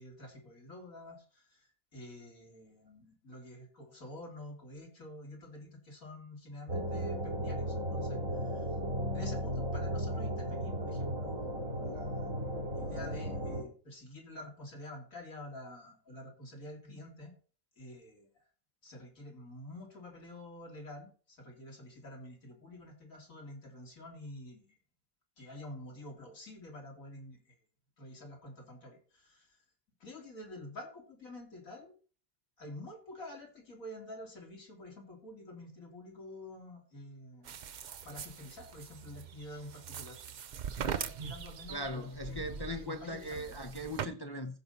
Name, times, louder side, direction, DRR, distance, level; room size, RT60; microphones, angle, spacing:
voice 1, 0.0-8.7 9.1-12.3 12.7-17.3 17.8-18.3 18.8-24.7 25.4-27.5 28.0-29.6 30.0-31.9 32.6-37.5 38.0-40.2 40.6-43.5, left 1 dB, 75° left, 3.1 m, -48 dB
sound 1, 6.7-13.6, equal, 85° right, 3.2 m, -35 dB
sound 2, 37.4-44.1, right 8 dB, 60° right, 0.4 m, -42 dB
voice 2, 41.7-44.6, left 1 dB, 25° left, 0.6 m, -39 dB
14.5 x 5.5 x 4.1 m
omnidirectional pair, 1.4 m